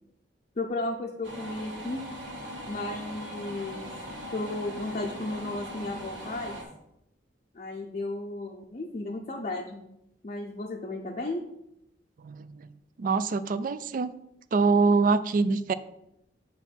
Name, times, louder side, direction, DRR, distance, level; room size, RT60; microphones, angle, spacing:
voice 1, 0.6-2.1 2.7-3.9 4.3-6.6 7.5-9.8 10.2-11.4, left 2 dB, 40° left, 0 dB, 0.5 m, -34 dB
sound 1, 1.2-6.6, equal, 90° right, 1.6 m, -40 dB
voice 2, 12.2-12.7 13.0-14.1 14.5-15.7, right 4 dB, 50° right, 13 dB, 0.4 m, -24 dB
7.2 x 3.0 x 5.8 m, 0.82 s
head